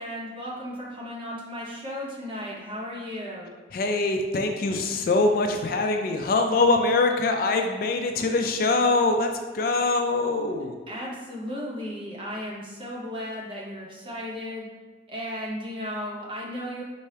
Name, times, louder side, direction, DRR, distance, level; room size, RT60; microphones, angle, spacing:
voice 1, 0.0-3.5 10.9-14.7 15.1-16.8, equal, 30° right, -4 dB, 0.7 m, -35 dB
voice 2, 3.7-9.3 9.5-10.7, left 3 dB, 50° left, 4 dB, 0.3 m, -23 dB
4.3 x 2.8 x 3.2 m, 1.3 s
head